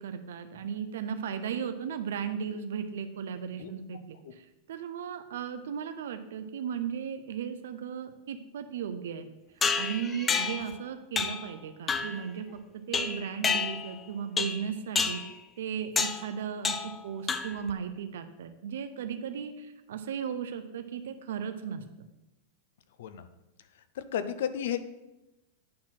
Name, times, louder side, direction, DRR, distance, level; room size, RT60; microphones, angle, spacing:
voice 1, 0.0-9.3 9.7-12.6 12.9-15.2 15.6-22.1, right 7 dB, 75° right, 9 dB, 0.7 m, -36 dB
sound 1, 9.6-10.7 11.2-11.5 11.9-12.2 12.9-14.0 14.4-14.7 15.0-15.3 16.0-16.3 16.6-17.0 17.3-17.7, left 5 dB, 10° left, 0.3 m, -29 dB
voice 2, 24.0-24.8, left 9 dB, 60° left, 12 dB, 0.6 m, -32 dB
8.5 x 4.3 x 5.9 m, 0.99 s
supercardioid pair, 180°, 0 cm